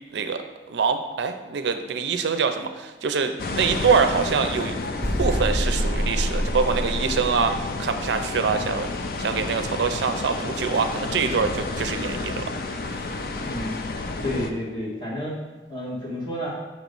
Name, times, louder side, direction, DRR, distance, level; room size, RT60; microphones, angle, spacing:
voice 1, 0.1-4.7 5.2-8.9 9.2-12.5 12.8-13.1, right 5 dB, 80° right, 8 dB, 0.4 m, -25 dB
sound 1, 3.4-14.5, left 3 dB, 55° left, 0.4 m, -30 dB
sound 2, 5.0-7.7, equal, 5° left, 1.2 m, -26 dB
voice 2, 13.2-13.9 14.2-15.3 15.7-16.6, left 1 dB, 25° left, -6 dB, 1.6 m, -31 dB
6.6 x 3.0 x 5.2 m, 1.2 s
head